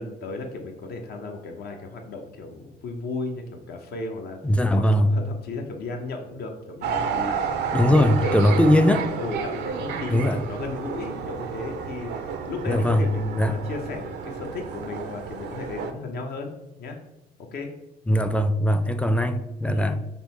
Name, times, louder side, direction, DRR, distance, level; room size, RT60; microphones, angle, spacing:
voice 1, 0.0-4.4 4.7-8.6 9.2-16.5 16.8-17.0 17.4-17.7 19.6-20.0, left 3 dB, 70° left, 0.9 m, -35 dB
voice 2, 4.4-5.1 7.7-9.1 10.1-10.4 12.7-13.1 13.4-13.5 18.1-20.0, left 1 dB, 5° left, 0.4 m, -20 dB
sound 1, 6.8-15.9, right 6 dB, 80° right, 0.5 m, -31 dB
5.3 x 2.1 x 4.3 m
supercardioid pair, 75°, 17 cm